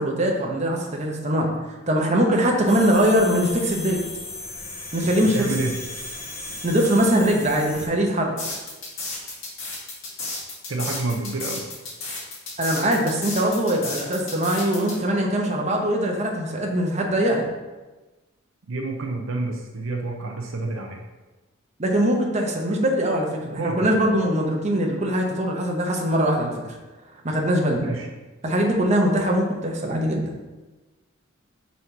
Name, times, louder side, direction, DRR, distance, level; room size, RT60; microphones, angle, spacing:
voice 1, 0.0-1.5 1.9-4.0 4.9-5.4 6.6-8.3 12.6-17.4 21.8-26.8 27.2-27.9 28.4-30.3, right 1 dB, 35° right, 0 dB, 0.9 m, -22 dB
sound 1, 2.7-7.9, left 2 dB, 30° left, 1.1 m, -36 dB
voice 2, 5.3-5.7 10.7-11.6 18.7-21.0 23.6-24.0 27.8-28.1, right 3 dB, 70° right, 2 dB, 0.7 m, -28 dB
sound 2, 8.4-14.9, left 3 dB, 70° left, 1.9 m, -32 dB
5.7 x 4.2 x 4.6 m, 1.2 s
head